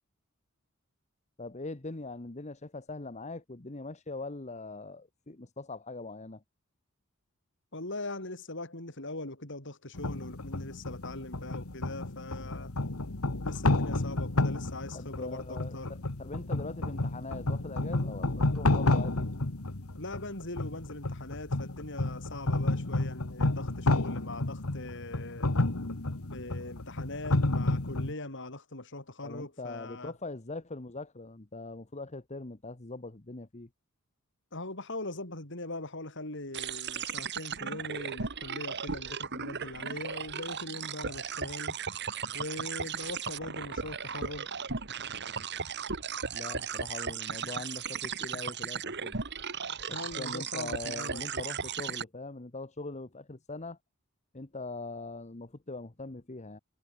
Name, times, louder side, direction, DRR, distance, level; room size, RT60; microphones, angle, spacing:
voice 1, 1.4-6.4 14.9-19.3 29.2-33.7 46.3-49.2 49.9-53.8 54.3-56.6, left 3 dB, 35° left, 1.2 m, -42 dB
voice 2, 7.7-12.7 13.4-15.9 20.0-25.5 26.3-30.1 34.5-41.8 42.3-44.6 49.9-51.4, left 2 dB, 60° left, 6.3 m, -41 dB
sound 1, 9.9-28.1, left 2 dB, 85° left, 1.7 m, -31 dB
sound 2, 36.5-52.0, right 6 dB, 55° right, 2.7 m, -36 dB
head